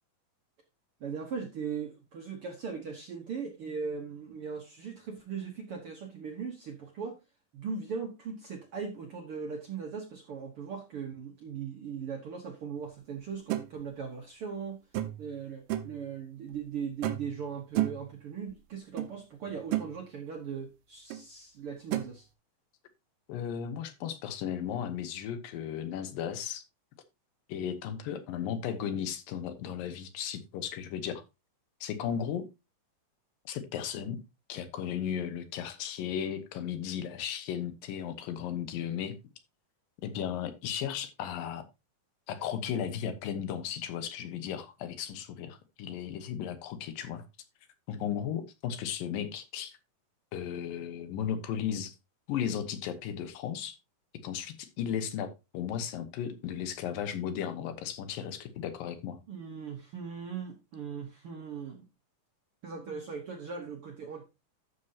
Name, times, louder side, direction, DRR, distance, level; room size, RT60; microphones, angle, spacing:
voice 1, 1.0-7.2 7.5-14.8 15.2-22.3 59.3-61.9 62.6-64.2, right 6 dB, 65° right, 1.4 m, -39 dB
sound 1, 13.5-13.7 14.9-15.3 15.7-16.0 17.0-17.4 17.8-18.1 19.0-19.1 19.5-19.9 21.1-21.2 21.9-22.1, right 14 dB, 85° right, 2.5 m, -31 dB
voice 2, 23.3-26.6 27.5-31.2 31.8-32.5 33.5-34.2 34.5-39.2 40.0-41.6 42.3-47.2 47.9-49.8 50.3-51.9 52.3-53.8 54.2-59.2, left 9 dB, 85° left, 2.8 m, -35 dB
13.0 x 6.5 x 2.8 m
omnidirectional pair, 3.9 m